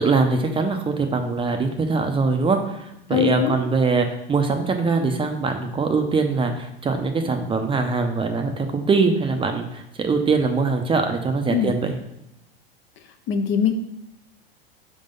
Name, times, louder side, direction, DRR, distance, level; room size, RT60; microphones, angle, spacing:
voice 1, 0.0-12.0, right 4 dB, 15° right, 5 dB, 0.6 m, -22 dB
voice 2, 3.1-3.6 11.5-11.7 13.3-13.7, left 8 dB, 40° left, 7 dB, 0.7 m, -21 dB
4.9 x 3.8 x 5.2 m, 0.85 s
hypercardioid pair, 100°, 30 cm